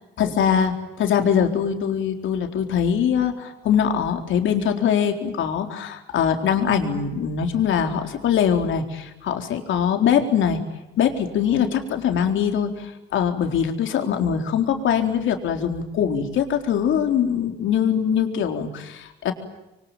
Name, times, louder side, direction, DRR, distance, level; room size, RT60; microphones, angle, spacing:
voice 1, 0.2-10.6 11.0-19.3, left 8 dB, 75° left, 5 dB, 4.1 m, -22 dB
26.5 x 24.5 x 9.1 m, 0.95 s
cardioid pair, 90°, 20 cm